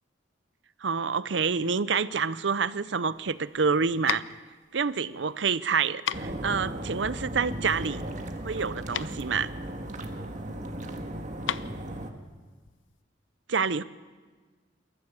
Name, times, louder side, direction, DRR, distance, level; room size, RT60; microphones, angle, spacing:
voice 1, 0.8-4.2 4.7-8.0 8.4-9.5 13.5-13.8, right 5 dB, 70° right, 16 dB, 0.7 m, -27 dB
sound 1, 3.1-13.0, left 9 dB, 85° left, 0.6 m, -38 dB
sound 2, 6.1-12.1, right 1 dB, 40° right, 1.7 m, -36 dB
28.0 x 14.0 x 7.3 m, 1.4 s
head